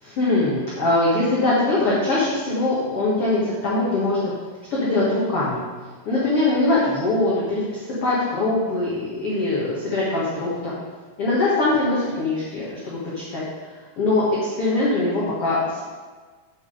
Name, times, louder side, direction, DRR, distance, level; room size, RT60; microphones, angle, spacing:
voice 1, 0.0-4.3 4.8-5.6 6.0-10.7 11.2-13.4 14.0-15.8, left 2 dB, 80° left, -8 dB, 1.3 m, -22 dB
8.7 x 6.1 x 4.9 m, 1.4 s
omnidirectional pair, 5.4 m